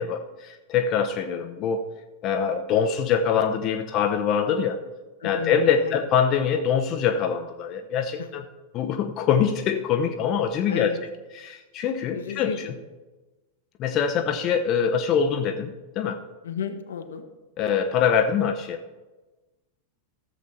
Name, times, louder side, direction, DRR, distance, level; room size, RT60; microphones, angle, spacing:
voice 1, 0.0-1.9 2.2-4.8 5.2-8.4 8.7-10.9 11.3-12.7 13.8-16.2 17.6-18.8, left 7 dB, 35° left, 6 dB, 0.8 m, -24 dB
voice 2, 5.2-5.5 5.8-6.0 8.2-8.3 10.7-11.0 12.1-12.7 16.4-17.2, left 8 dB, 65° left, 7 dB, 1.0 m, -32 dB
14.0 x 7.4 x 4.3 m, 1.2 s
figure-of-eight pair, 90°, 0 cm